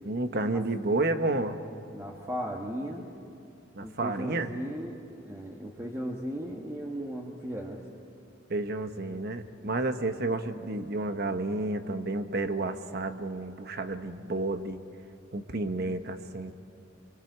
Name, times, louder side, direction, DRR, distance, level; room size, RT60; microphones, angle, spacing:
voice 1, 0.0-1.6 3.7-4.5 8.5-14.8 15.3-16.5, right 2 dB, 55° right, 8 dB, 1.2 m, -31 dB
voice 2, 1.9-3.1 3.8-7.8, equal, 15° right, -2 dB, 1.5 m, -36 dB
24.5 x 24.5 x 8.0 m, 2.6 s
head